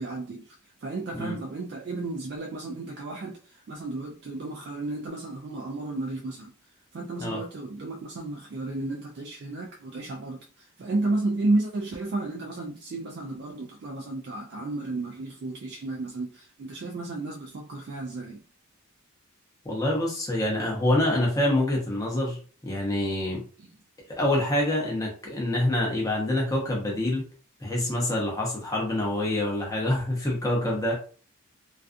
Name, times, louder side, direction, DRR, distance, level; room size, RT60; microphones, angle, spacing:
voice 1, 0.0-6.5 6.9-18.4 23.6-23.7, right 2 dB, 50° right, 0.3 m, -32 dB
voice 2, 19.6-23.4 24.1-27.2 27.6-30.9, left 1 dB, 15° left, 0.7 m, -26 dB
2.4 x 2.3 x 2.5 m
head